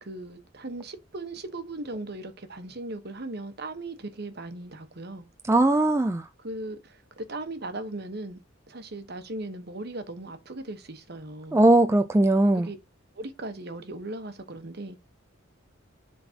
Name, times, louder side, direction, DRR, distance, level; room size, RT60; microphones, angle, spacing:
voice 1, 0.0-5.3 6.4-8.4 8.7-11.6 12.6-12.8 13.1-15.0, right 2 dB, 55° right, 1.1 m, -38 dB
voice 2, 5.5-6.3 11.5-12.7, right 2 dB, 15° right, 0.3 m, -20 dB
10.5 x 3.8 x 2.8 m
head